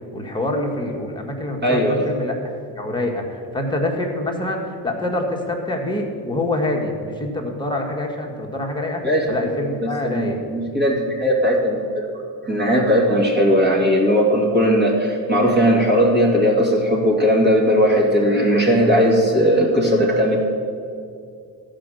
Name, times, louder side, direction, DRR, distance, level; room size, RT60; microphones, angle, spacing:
voice 1, 0.1-2.3 2.7-9.0 9.3-10.4, left 1 dB, 10° left, 0 dB, 1.6 m, -25 dB
voice 2, 1.6-2.1 9.0-9.3 9.8-12.2 12.4-20.4, equal, 25° right, -1 dB, 2.4 m, -18 dB
13.5 x 5.2 x 7.8 m, 2.4 s
cardioid pair, 110°, 40 cm